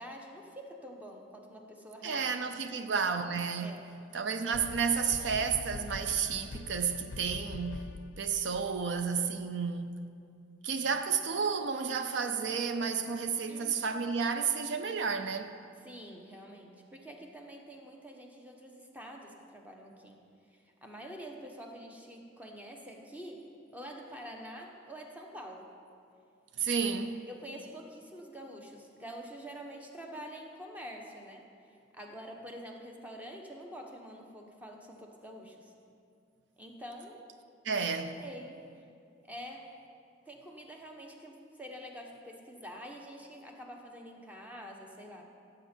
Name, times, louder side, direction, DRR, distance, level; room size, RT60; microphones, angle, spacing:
voice 1, 0.0-2.2 3.6-3.8 13.5-13.8 15.8-20.2 20.5-23.4 23.7-25.7 27.3-31.5 31.9-35.7 36.6-37.3 38.2-38.6 39.3-39.7 40.3-45.2, equal, 10° right, 1.0 m, -46 dB
voice 2, 2.0-3.8 4.1-7.9 8.2-10.0 10.6-15.5 26.6-27.2 37.6-38.2, right 6 dB, 75° right, 0.6 m, -31 dB
sound 1, 4.5-9.0, left 3 dB, 70° left, 0.4 m, -44 dB
15.5 x 7.7 x 4.4 m
head